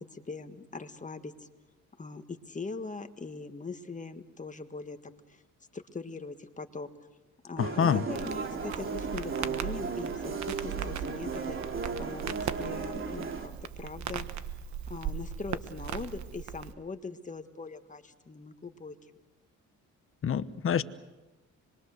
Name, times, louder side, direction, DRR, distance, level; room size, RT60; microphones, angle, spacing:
voice 1, 0.0-1.5 2.0-5.4 5.7-6.9 7.4-11.6 12.0-14.3 14.9-19.0, left 4 dB, 25° left, 8 dB, 1.7 m, -41 dB
voice 2, 7.6-8.0 20.2-20.8, left 8 dB, 45° left, 13 dB, 1.1 m, -26 dB
sound 1, 7.6-13.5, right 5 dB, 45° right, 2.9 m, -35 dB
Crackle, 8.1-16.7, right 9 dB, 70° right, 1.3 m, -39 dB
26.0 x 22.5 x 6.7 m, 1.1 s
cardioid pair, 90°, 30 cm